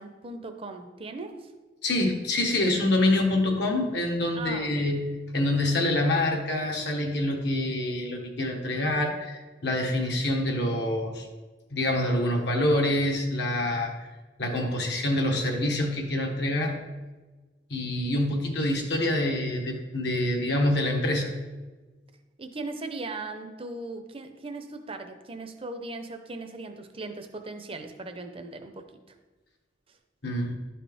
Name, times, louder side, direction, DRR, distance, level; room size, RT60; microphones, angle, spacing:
voice 1, 0.0-1.5 4.3-4.9 22.4-28.9, right 3 dB, 30° right, 6 dB, 0.7 m, -38 dB
voice 2, 1.8-11.3 11.7-13.9 14.4-16.8 17.7-21.3 30.2-30.5, left 1 dB, 65° left, 1 dB, 1.2 m, -26 dB
11.5 x 4.3 x 3.5 m, 1.3 s
head